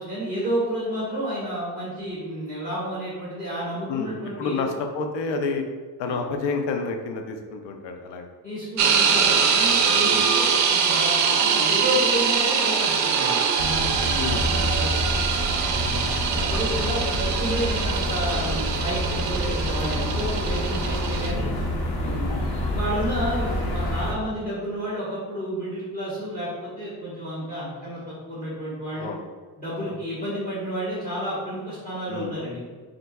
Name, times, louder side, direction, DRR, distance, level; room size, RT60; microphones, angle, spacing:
voice 1, 0.0-4.6 6.0-6.2 8.4-14.3 14.8-14.9 15.6-21.5 22.0-29.1 29.6-32.6, equal, 20° left, -10 dB, 1.2 m, -31 dB
voice 2, 3.9-5.6 6.0-8.3 10.0-10.2 14.2-14.7 15.9-16.0 18.9-19.1 22.0-22.4 28.9-29.2 29.8-29.9 32.1-32.3, left 4 dB, 70° left, 4 dB, 0.6 m, -30 dB
sound 1, 8.8-21.3, right 6 dB, 40° right, 0.4 m, -23 dB
sound 2, 13.6-24.1, left 1 dB, 55° left, 1.1 m, -27 dB
4.3 x 3.9 x 2.3 m, 1.5 s
cardioid pair, 130°, 44 cm